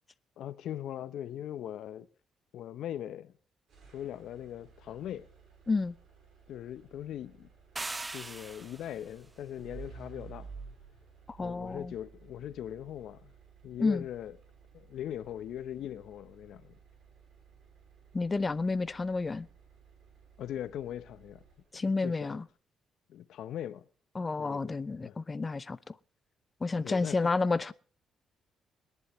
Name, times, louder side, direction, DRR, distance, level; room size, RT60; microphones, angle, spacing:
voice 1, 0.4-2.1 2.5-3.3 3.9-5.3 6.5-7.5 8.1-10.5 11.4-13.3 13.6-14.3 14.7-16.8 20.4-21.4 21.7-22.4 23.1-23.9 24.4-25.2 26.8-27.3, left 11 dB, 75° left, 0.9 m, -40 dB
sound 1, 3.7-22.0, right 5 dB, 65° right, 5.3 m, -54 dB
sound 2, 7.8-9.0, right 2 dB, 20° right, 0.6 m, -39 dB
voice 2, 11.3-11.9 13.8-14.0 18.1-19.5 21.7-22.4 24.1-25.9 26.6-27.7, left 3 dB, 25° left, 0.7 m, -30 dB
21.5 x 11.0 x 3.2 m
cardioid pair, 90°, 0 cm